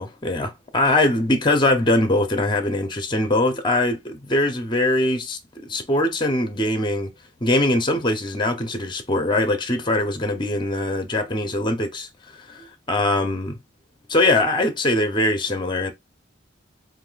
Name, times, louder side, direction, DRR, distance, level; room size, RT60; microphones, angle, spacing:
voice 1, 0.0-7.1 7.4-12.1 12.5-13.6 14.1-15.9, left 1 dB, 25° left, 0.8 m, -22 dB
4.2 x 2.7 x 3.9 m
head